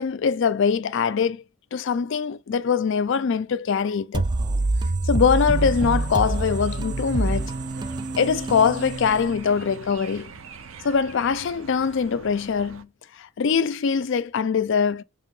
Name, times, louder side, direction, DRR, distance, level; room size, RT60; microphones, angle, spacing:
voice 1, 0.0-1.4 1.7-4.3 5.1-7.5 8.2-10.3 10.8-12.9 13.2-15.0, left 6 dB, 65° left, 0.4 m, -23 dB
sound 1, 4.1-9.8, right 2 dB, 20° right, 0.3 m, -26 dB
sound 2, 5.3-12.8, right 5 dB, 90° right, 0.6 m, -44 dB
6.4 x 2.8 x 5.3 m
head